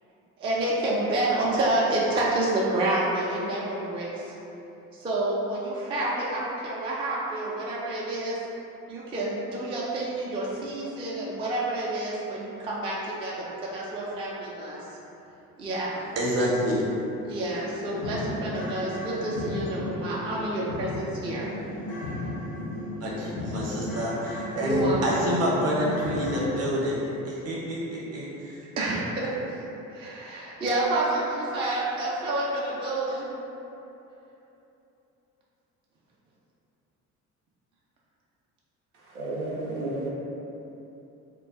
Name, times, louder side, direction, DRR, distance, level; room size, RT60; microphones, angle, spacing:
voice 1, 0.4-4.3 4.9-8.4 8.9-14.8 15.6-16.0 17.3-21.5 24.6-25.3 28.8-29.5 29.9-33.3, right 2 dB, 15° right, -6 dB, 0.4 m, -28 dB
voice 2, 16.2-16.9 23.0-28.6, equal, 35° right, -5 dB, 0.8 m, -28 dB
sound 1, 17.4-26.4, left 2 dB, 80° left, 0.6 m, -35 dB
voice 3, 38.9-40.1, right 2 dB, 80° right, -4 dB, 0.5 m, -32 dB
2.3 x 2.2 x 3.4 m, 3.0 s
figure-of-eight pair, 55°, 42 cm